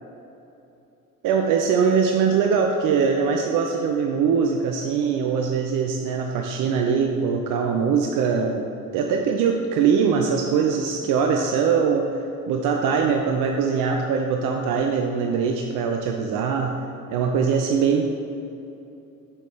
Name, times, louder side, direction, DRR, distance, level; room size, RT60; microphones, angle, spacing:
voice 1, 1.2-8.6 8.9-16.7 17.1-18.0, right 6 dB, 45° right, 3 dB, 0.7 m, -22 dB
9.5 x 6.3 x 3.4 m, 2.8 s
figure-of-eight pair, 60°, 45 cm